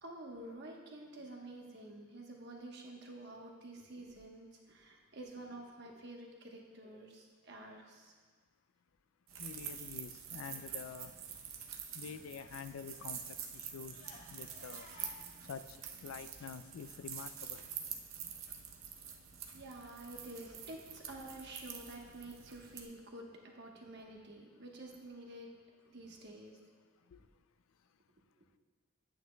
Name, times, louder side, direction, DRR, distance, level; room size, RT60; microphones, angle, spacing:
voice 1, 0.0-8.1 19.5-25.5 25.8-26.6, right 1 dB, 55° right, 0 dB, 1.1 m, -49 dB
sound 1, 9.3-22.8, right 8 dB, 75° right, 0.7 m, -47 dB
voice 2, 9.4-11.1 11.9-14.0 14.3-14.9 15.5-15.6 16.0-17.6 27.1-27.2, left 6 dB, 75° left, 11 dB, 0.4 m, -47 dB
Crying sobbing, 10.2-12.3 12.6-17.6, left 2 dB, 35° left, 1.6 m, -61 dB
10.0 x 9.1 x 2.2 m, 1.5 s
head